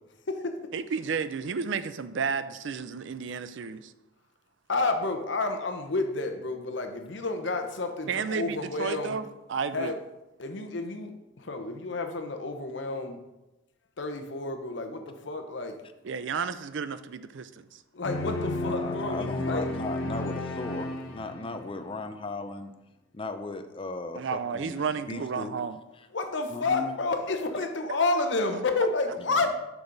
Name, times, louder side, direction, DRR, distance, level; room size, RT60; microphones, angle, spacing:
voice 1, 0.7-3.9 8.1-9.9 16.0-17.8 24.1-25.8, right 5 dB, 65° right, 13 dB, 0.4 m, -32 dB
voice 2, 4.7-9.1 9.7-10.0 10.4-11.1 11.4-13.2 14.0-15.8 17.9-19.7 26.1-29.5, left 3 dB, 60° left, 6 dB, 0.8 m, -30 dB
sound 1, 18.0-21.8, left 2 dB, 90° left, 0.9 m, -33 dB
voice 3, 18.6-22.7 23.1-25.6 26.0-26.1 26.5-27.0 29.2-29.5, left 3 dB, 25° left, 8 dB, 0.5 m, -37 dB
6.7 x 6.1 x 3.9 m, 0.99 s
head